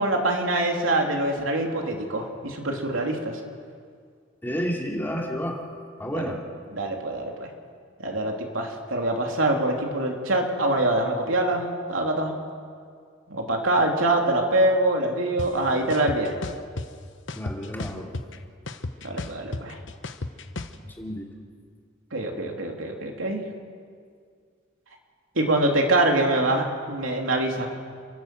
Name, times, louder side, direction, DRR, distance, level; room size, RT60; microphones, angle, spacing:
voice 1, 0.0-3.4 6.1-6.3 6.7-7.5 8.0-12.3 13.3-16.3 19.0-19.8 22.1-23.4 25.4-27.7, right 1 dB, 80° right, 1 dB, 3.1 m, -24 dB
voice 2, 4.4-5.6 6.0-6.4 17.4-18.1 20.8-21.2, equal, 10° left, 0 dB, 2.6 m, -30 dB
sound 1, 15.4-15.5 15.9-16.9 17.3-18.4 18.7-20.7, left 2 dB, 65° left, 1.0 m, -33 dB
29.5 x 12.0 x 7.8 m, 2.1 s
head